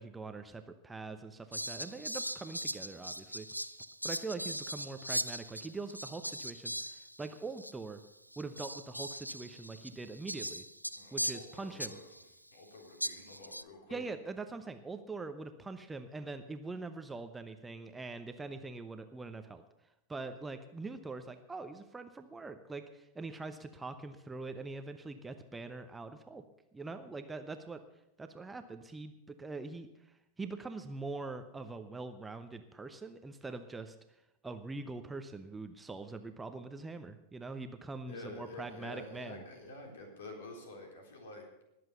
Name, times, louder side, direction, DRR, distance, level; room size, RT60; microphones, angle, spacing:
voice 1, 0.0-3.5 4.0-8.0 8.4-10.7 11.1-12.0 13.9-19.6 20.1-26.4 26.7-27.8 28.2-29.9 30.4-34.0 34.4-39.4, right 3 dB, 10° right, 9 dB, 0.9 m, -43 dB
Fowl, 1.5-7.3 7.6-7.7 8.3-12.2 13.0-13.6, equal, 90° right, 0.4 m, -40 dB
voice 2, 11.0-12.1 12.5-14.0 38.1-41.5, left 2 dB, 60° left, 2 dB, 3.8 m, -48 dB
20.0 x 7.8 x 6.7 m, 0.89 s
figure-of-eight pair, 90°, 0 cm